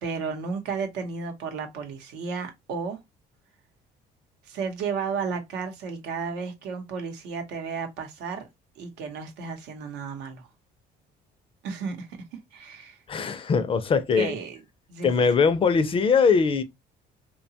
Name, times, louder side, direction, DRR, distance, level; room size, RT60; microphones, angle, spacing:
voice 1, 0.0-3.0 4.5-8.5 8.8-10.5 11.6-12.1 12.5-13.0 14.1-14.6 14.9-15.1, right 5 dB, 90° right, 0.8 m, -33 dB
voice 2, 13.1-14.4 15.0-16.6, left 5 dB, 35° left, 0.4 m, -21 dB
2.8 x 2.2 x 2.7 m
cardioid pair, 110°, 17 cm